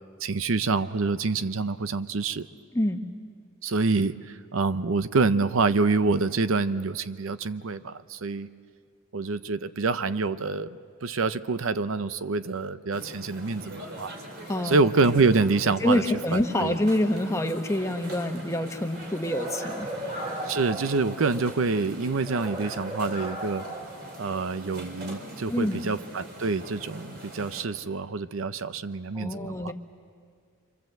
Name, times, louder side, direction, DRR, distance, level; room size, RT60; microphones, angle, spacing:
voice 1, 0.2-2.5 3.6-8.5 9.1-14.1 14.6-16.0 16.3-16.8 20.5-23.6 24.2-29.7, right 3 dB, 70° right, 13 dB, 0.7 m, -26 dB
sound 1, 12.9-27.6, right 1 dB, 50° right, 3.8 m, -42 dB
voice 2, 15.8-19.9 25.5-25.8 29.1-29.7, left 1 dB, 15° left, 5 dB, 1.2 m, -26 dB
sound 2, 19.2-21.6 22.2-24.6, right 1 dB, 35° right, 3.4 m, -37 dB
26.0 x 25.5 x 7.8 m, 2.1 s
head